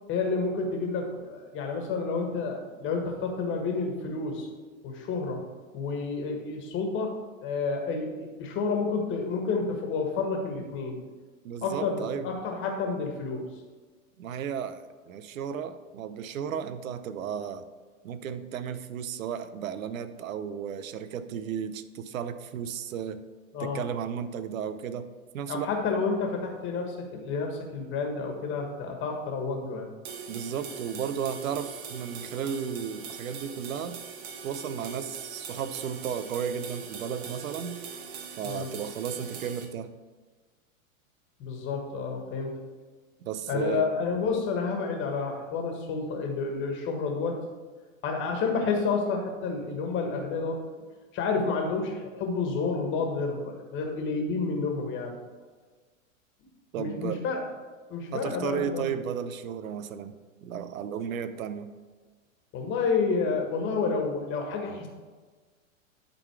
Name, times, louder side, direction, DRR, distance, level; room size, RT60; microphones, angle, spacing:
voice 1, 0.1-4.5 4.8-5.4 5.7-7.1 7.4-11.0 11.6-13.5 23.5-23.8 25.5-29.9 38.4-38.7 41.4-42.5 43.5-47.4 48.0-50.6 51.1-55.2 56.8-57.5 57.9-58.9 62.5-64.9, left 4 dB, 30° left, 2 dB, 1.5 m, -30 dB
voice 2, 11.4-12.3 14.2-17.7 18.0-23.2 23.6-25.7 30.3-34.0 34.4-37.8 38.4-39.9 43.2-43.9 56.7-57.2 58.1-60.1 60.4-61.7, right 8 dB, 80° right, 12 dB, 0.8 m, -34 dB
sound 1, 30.0-39.7, right 6 dB, 35° right, 1.1 m, -42 dB
11.5 x 3.9 x 4.7 m, 1.4 s
hypercardioid pair, 135°, 40 cm